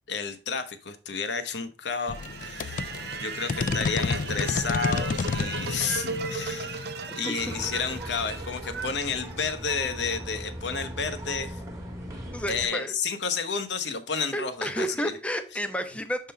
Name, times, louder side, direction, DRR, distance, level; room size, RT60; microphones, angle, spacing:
voice 1, 0.1-6.9 7.1-11.6 12.5-15.1, left 5 dB, 75° left, 9 dB, 0.8 m, -31 dB
sound 1, 2.0-10.1, right 5 dB, 65° right, 0.7 m, -36 dB
sound 2, 2.1-8.5, left 4 dB, 45° left, 0.3 m, -32 dB
sound 3, 7.4-12.7, equal, 20° right, 1.2 m, -39 dB
voice 2, 12.3-12.9 14.3-16.3, equal, 5° left, 8 dB, 0.6 m, -31 dB
6.6 x 3.7 x 4.2 m, 0.35 s
head